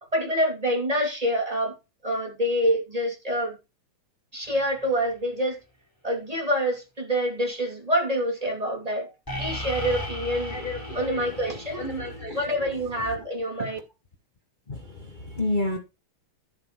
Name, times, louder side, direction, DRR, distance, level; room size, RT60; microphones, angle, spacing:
voice 1, 0.1-1.8 2.0-3.6 4.3-5.6 6.0-9.1 9.4-10.6 10.9-11.9 12.3-13.8, equal, 15° right, 2.2 m, -26 dB
sound 1, 4.5-4.7 9.3-12.2, left 1 dB, 5° left, 2.9 m, -35 dB
voice 2, 10.5-11.4 11.8-12.4 14.7-15.8, left 1 dB, 65° left, 0.4 m, -31 dB
11.5 x 7.1 x 4.5 m
omnidirectional pair, 3.4 m